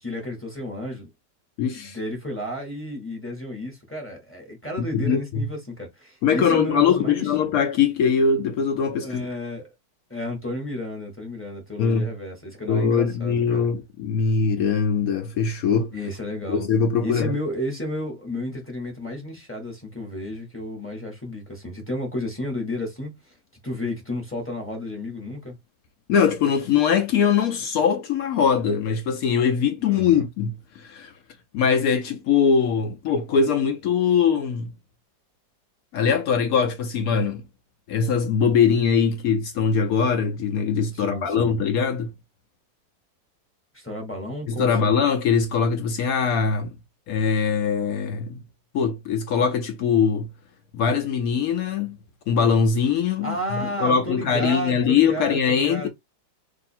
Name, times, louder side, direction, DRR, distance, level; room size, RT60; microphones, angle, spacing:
voice 1, 0.0-1.1 1.7-7.3 9.0-9.7 10.1-13.7 15.9-16.7 17.0-23.3 23.6-25.5 29.8-30.3 40.9-41.6 43.7-44.9 53.2-55.9, left 1 dB, 10° left, 0.8 m, -32 dB
voice 2, 1.6-2.0 4.8-5.5 6.2-9.3 11.8-12.1 12.7-15.9 16.5-17.3 26.1-31.1 31.5-34.7 35.9-37.4 37.9-42.1 44.5-46.8 47.1-48.4 48.7-50.3 50.7-52.0 52.3-53.4 53.8-55.9, left 6 dB, 80° left, 0.8 m, -22 dB
2.7 x 2.6 x 4.1 m
omnidirectional pair, 2.0 m